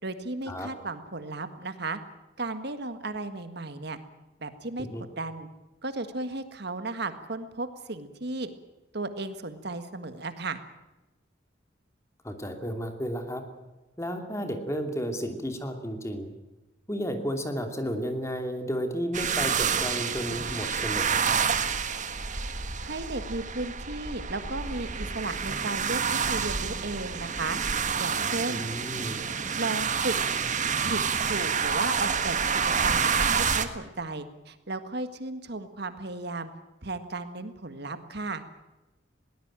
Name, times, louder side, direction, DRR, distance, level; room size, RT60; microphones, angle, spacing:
voice 1, 0.0-2.0 2.4-4.0 4.4-4.9 5.2-5.5 5.8-8.5 8.9-10.6 22.8-28.6 29.6-30.2 30.8-36.5 36.8-38.4, right 2 dB, 60° right, 10 dB, 1.7 m, -35 dB
voice 2, 12.2-13.4 14.0-16.3 16.9-21.4 28.5-29.2, equal, 15° left, 6 dB, 2.8 m, -32 dB
sound 1, 19.1-33.7, right 6 dB, 40° right, 1.5 m, -28 dB
21.5 x 18.5 x 8.9 m, 1.0 s
head